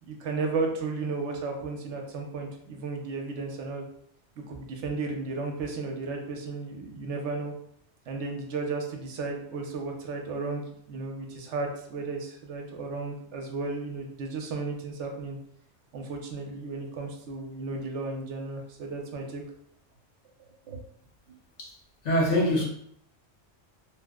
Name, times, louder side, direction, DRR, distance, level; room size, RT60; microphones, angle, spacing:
voice 1, 0.1-3.8 4.5-7.5 8.1-15.4 15.9-19.4 20.7-20.8, right 3 dB, 80° right, 2 dB, 0.9 m, -34 dB
voice 2, 22.0-22.6, equal, 85° left, -2 dB, 1.2 m, -24 dB
3.0 x 2.0 x 3.4 m, 0.68 s
omnidirectional pair, 1.2 m